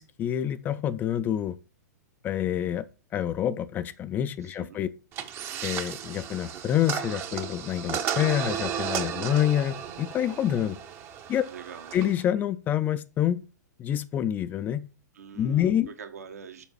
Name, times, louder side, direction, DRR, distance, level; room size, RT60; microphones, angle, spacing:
voice 1, 0.0-1.6 2.2-2.8 3.1-4.9 5.6-10.8 11.3-11.4 11.9-13.4 13.8-14.9 15.4-15.9, left 10 dB, 20° left, 0.5 m, -27 dB
voice 2, 4.4-4.8 11.5-12.0 15.1-16.6, right 7 dB, 60° right, 1.3 m, -44 dB
sound 1, 5.1-12.2, right 9 dB, 25° right, 0.8 m, -34 dB
7.1 x 5.2 x 6.1 m
figure-of-eight pair, 110°, 9 cm